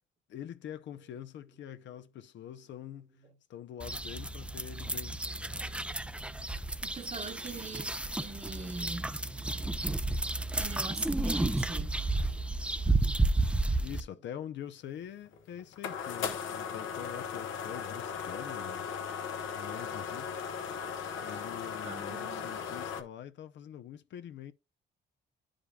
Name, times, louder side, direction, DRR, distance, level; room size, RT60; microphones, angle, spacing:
voice 1, 0.3-3.1 3.5-5.5 13.8-18.8 19.5-20.3 21.2-24.5, left 10 dB, 65° left, 0.6 m, -45 dB
sound 1, 3.8-14.0, right 2 dB, 5° right, 0.5 m, -32 dB
voice 2, 6.8-9.2 10.6-12.0 21.8-22.5, right 4 dB, 35° right, 1.1 m, -42 dB
sound 2, 15.0-23.0, left 7 dB, 85° left, 1.1 m, -37 dB
10.0 x 5.0 x 2.3 m
cardioid pair, 90°, 20 cm